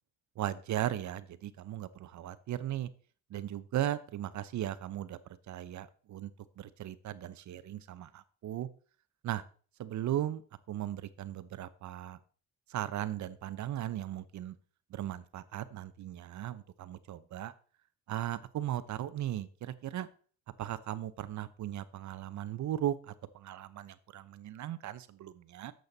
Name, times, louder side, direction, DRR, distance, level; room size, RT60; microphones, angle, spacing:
voice 1, 0.4-2.9 3.3-5.2 5.5-6.3 6.6-8.7 9.2-9.4 9.8-10.4 10.7-12.2 12.7-14.6 14.9-17.5 18.1-20.1 20.6-25.7, right 12 dB, 70° right, 14 dB, 1.0 m, -37 dB
12.0 x 7.9 x 4.1 m, 0.41 s
cardioid pair, 90°, 30 cm